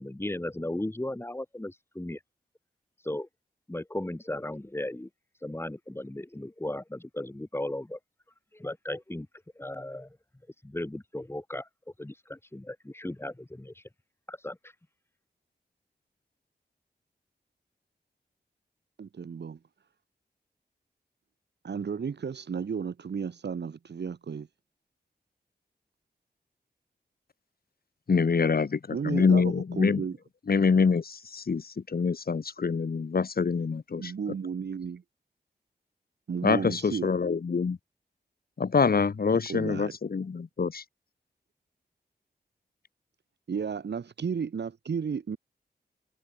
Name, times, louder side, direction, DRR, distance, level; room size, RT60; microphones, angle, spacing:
voice 1, 0.0-2.2 3.0-3.3 3.7-5.1 5.4-8.0 8.5-9.3 9.6-10.2 10.6-11.7 12.0-13.8 14.3-14.7, left 1 dB, 15° left, 4.7 m, -36 dB
voice 2, 19.0-19.6 21.6-24.5 28.9-30.2 34.0-35.0 36.3-37.1 39.3-39.9 43.5-45.4, right 6 dB, 90° right, 4.0 m, -33 dB
voice 3, 28.1-30.0 30.5-34.1 36.4-37.8 38.6-40.8, left 5 dB, 60° left, 3.3 m, -25 dB
wide cardioid pair, 105°, 17 cm